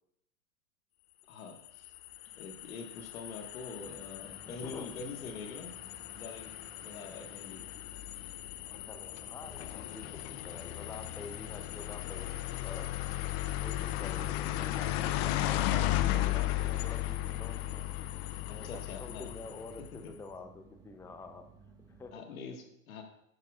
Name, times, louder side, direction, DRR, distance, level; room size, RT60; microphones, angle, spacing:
voice 1, 1.3-1.9 2.3-5.8 6.2-7.7 18.5-19.3 20.0-20.1 22.1-23.0, left 4 dB, 85° left, 4 dB, 1.6 m, -45 dB
sound 1, 1.5-20.0, left 14 dB, 50° left, 0.6 m, -36 dB
sound 2, 3.7-22.1, right 4 dB, 10° right, 1.4 m, -58 dB
voice 2, 4.2-5.0 8.6-12.3 12.6-13.2 13.6-17.8 18.4-21.4 21.9-22.1, left 3 dB, 5° left, 7 dB, 0.5 m, -48 dB
10.5 x 8.8 x 2.4 m, 0.78 s
hypercardioid pair, 110°, 41 cm